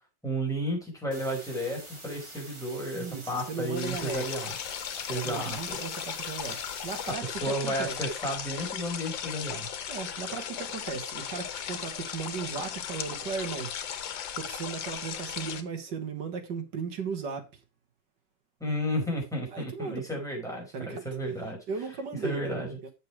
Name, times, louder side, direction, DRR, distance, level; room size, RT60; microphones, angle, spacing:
voice 1, 0.2-4.5 5.1-5.6 7.0-9.7 18.6-21.6 22.2-22.8, equal, ahead, 4.9 m, -32 dB
sound 1, 1.1-7.1, right 1 dB, 15° right, 1.7 m, -46 dB
voice 2, 2.9-4.5 5.0-8.0 9.9-13.7 14.4-17.6 19.5-20.2 20.7-21.0 21.7-22.6 22.8-22.9, right 5 dB, 70° right, 2.1 m, -36 dB
sound 2, 3.8-15.6, left 9 dB, 85° left, 1.7 m, -36 dB
8.1 x 6.7 x 4.6 m
omnidirectional pair, 2.0 m